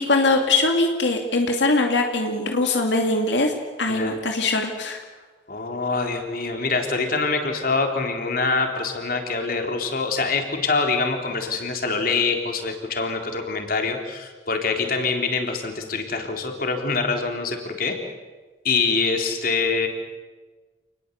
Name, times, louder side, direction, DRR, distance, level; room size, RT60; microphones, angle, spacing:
voice 1, 0.0-5.0, left 2 dB, 85° left, 3 dB, 2.6 m, -22 dB
voice 2, 3.9-4.2 5.5-18.0 18.6-19.9, left 4 dB, 55° left, 4 dB, 3.8 m, -25 dB
29.0 x 20.5 x 8.3 m, 1.3 s
head